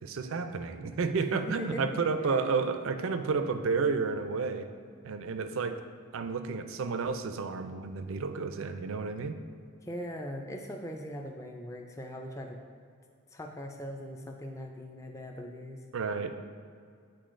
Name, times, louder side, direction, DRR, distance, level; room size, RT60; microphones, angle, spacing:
voice 1, 0.0-4.7 5.0-5.8 6.1-9.4 15.9-16.3, right 4 dB, 70° right, 9 dB, 0.4 m, -31 dB
voice 2, 1.2-1.8 2.2-2.4 9.8-12.6 13.3-15.8, equal, 15° left, 2 dB, 0.4 m, -40 dB
9.1 x 4.4 x 2.5 m, 2.2 s
head